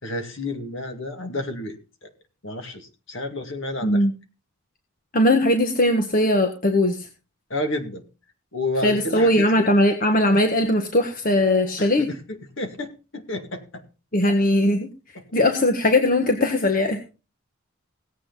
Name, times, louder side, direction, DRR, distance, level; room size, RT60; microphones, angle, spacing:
voice 1, 0.0-1.8 2.0-2.1 2.4-4.0 7.5-8.0 8.5-9.7 11.8-13.8 15.1-15.3, left 2 dB, 60° left, 6 dB, 2.3 m, -30 dB
voice 2, 3.8-4.1 5.1-7.0 8.8-12.1 14.1-14.9 15.3-17.0, left 1 dB, 40° left, 5 dB, 1.5 m, -19 dB
17.5 x 8.3 x 4.0 m, 0.32 s
head